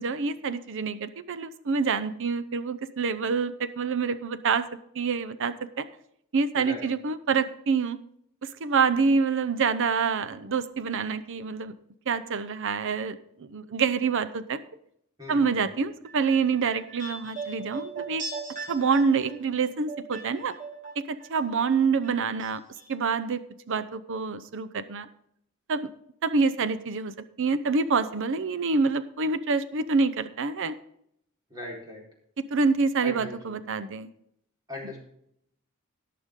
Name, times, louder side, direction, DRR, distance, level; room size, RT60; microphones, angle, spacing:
voice 1, 0.0-4.7 4.9-5.8 6.3-8.0 8.4-11.7 12.1-14.6 15.3-18.2 18.7-20.5 21.0-22.6 22.9-23.4 23.7-25.1 25.7-25.9 26.2-27.1 27.4-30.7 32.5-34.1, right 5 dB, 60° right, 13 dB, 0.6 m, -26 dB
voice 2, 15.2-15.6 31.5-32.0 33.0-33.5 34.7-35.0, left 1 dB, 20° right, -3 dB, 4.3 m, -39 dB
sound 1, 16.0-21.3 21.6-22.5 22.8-22.9, right 4 dB, 35° right, 4.4 m, -39 dB
18.0 x 6.9 x 3.7 m, 0.72 s
head